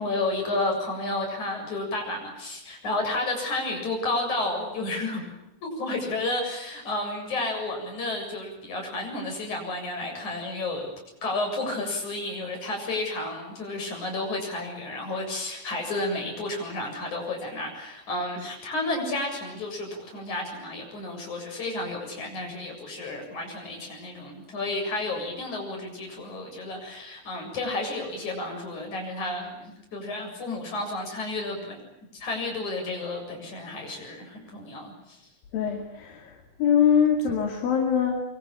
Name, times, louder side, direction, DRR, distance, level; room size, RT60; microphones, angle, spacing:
voice 1, 0.0-5.2 5.6-10.9 11.2-31.8 32.2-35.2, left 2 dB, 55° left, 2 dB, 9.0 m, -31 dB
voice 2, 35.5-36.2 36.6-38.2, left 7 dB, 85° left, 2 dB, 4.1 m, -22 dB
25.0 x 25.0 x 9.0 m, 0.89 s
omnidirectional pair, 4.0 m